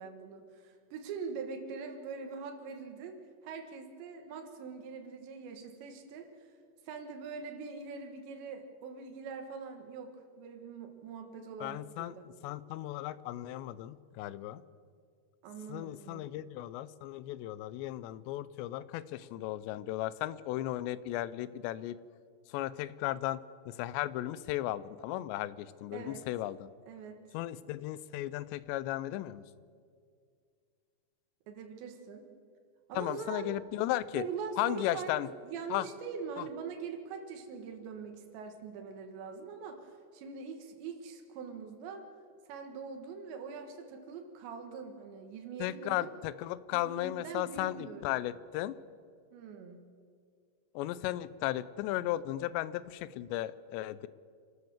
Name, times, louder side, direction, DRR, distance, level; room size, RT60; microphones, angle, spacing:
voice 1, 0.0-3.2 3.4-6.5 6.9-12.3 15.4-16.3 25.9-26.3 26.9-27.2 31.5-32.3 32.9-33.5 34.1-42.1 42.5-46.2 46.7-48.2 49.3-49.8, right 5 dB, 85° right, 4 dB, 3.8 m, -43 dB
voice 2, 11.6-12.2 12.4-14.6 15.7-22.0 22.5-26.7 27.3-29.4 32.9-34.2 34.6-35.3 35.7-35.9 45.6-48.8 50.8-54.1, left 15 dB, 85° left, 17 dB, 2.9 m, -35 dB
27.5 x 13.0 x 7.3 m, 2.1 s
omnidirectional pair, 5.0 m